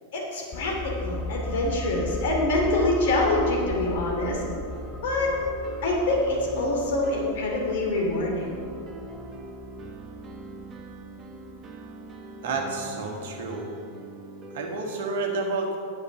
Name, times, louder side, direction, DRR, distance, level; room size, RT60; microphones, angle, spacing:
voice 1, 0.1-4.4 5.0-5.3 5.8-8.5, left 2 dB, 55° left, -1 dB, 2.6 m, -25 dB
sound 1, 0.5-11.9 12.2-12.3, left 2 dB, 20° left, 0.4 m, -37 dB
sound 2, 4.3-14.7, right 1 dB, 25° right, 1.2 m, -42 dB
voice 2, 12.4-13.7 14.5-15.8, right 3 dB, 55° right, 2 dB, 1.6 m, -30 dB
9.9 x 8.3 x 5.5 m, 2.4 s
figure-of-eight pair, 90°, 0 cm